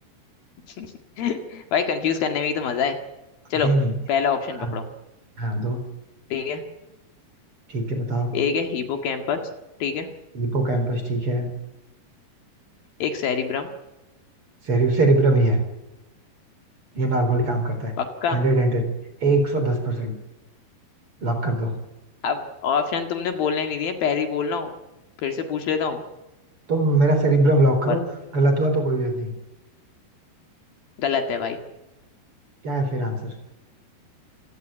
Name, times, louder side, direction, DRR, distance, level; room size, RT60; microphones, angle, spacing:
voice 1, 0.8-3.0 3.5-3.7 4.1-4.8 6.3-6.6 8.3-9.4 9.8-10.1 13.0-13.7 18.0-18.4 22.2-24.7 25.2-26.0 27.9-28.0 31.0-31.6, left 6 dB, 65° left, 6 dB, 3.6 m, -25 dB
voice 2, 3.6-3.9 4.6-4.8 5.4-5.8 7.7-8.3 10.3-11.5 14.6-15.6 16.9-17.9 18.3-18.9 19.2-20.1 21.2-21.7 26.7-28.0 28.3-29.3 32.6-33.3, right 2 dB, 35° right, 6 dB, 4.6 m, -21 dB
27.0 x 16.5 x 9.1 m, 0.98 s
omnidirectional pair, 4.8 m